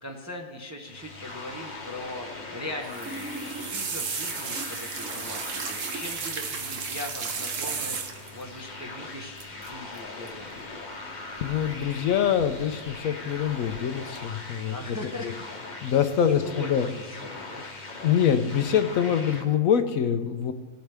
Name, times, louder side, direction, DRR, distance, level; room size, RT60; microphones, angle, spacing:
voice 1, 0.0-10.5 14.7-15.8 16.2-18.0, left 1 dB, 15° right, 1 dB, 0.7 m, -40 dB
sound 1, 0.8-19.5, left 3 dB, 35° left, 1.0 m, -41 dB
sound 2, 2.8-8.4 9.4-9.7 9.9-10.3 11.5-12.0 12.4-12.9 13.4-13.8 14.2-14.3, right 5 dB, 60° right, 1.2 m, -34 dB
voice 2, 11.4-14.7 15.2-15.3 15.8-16.9 18.0-20.5, left 8 dB, 70° left, 9 dB, 1.0 m, -24 dB
17.5 x 7.9 x 3.4 m, 1.3 s
omnidirectional pair, 1.6 m